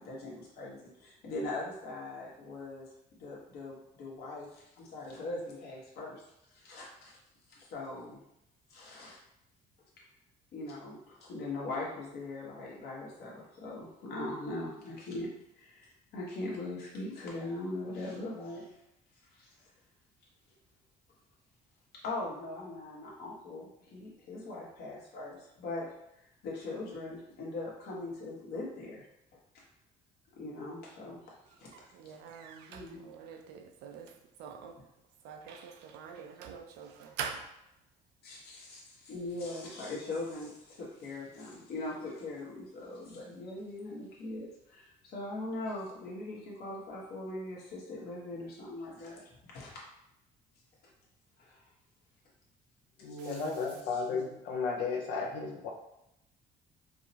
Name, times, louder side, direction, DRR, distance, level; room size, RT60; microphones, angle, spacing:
voice 1, 0.0-2.9 3.2-6.2 6.5-7.2 7.5-8.2 8.7-9.2 10.5-15.3 15.5-18.7 19.3-19.7 22.0-25.9 26.4-29.1 29.5-29.6 30.3-31.2 31.6-31.7 32.7-33.1 38.2-49.8 51.4-51.7 53.0-53.4 53.9-54.2, left 2 dB, 70° left, -4 dB, 1.2 m, -41 dB
voice 2, 31.7-34.8 35.2-37.5 53.2-53.6, right 6 dB, 90° right, 4 dB, 0.5 m, -44 dB
voice 3, 53.0-55.7, left 4 dB, 90° left, 1 dB, 0.6 m, -34 dB
4.7 x 2.0 x 2.8 m, 0.81 s
cardioid pair, 110°, 17 cm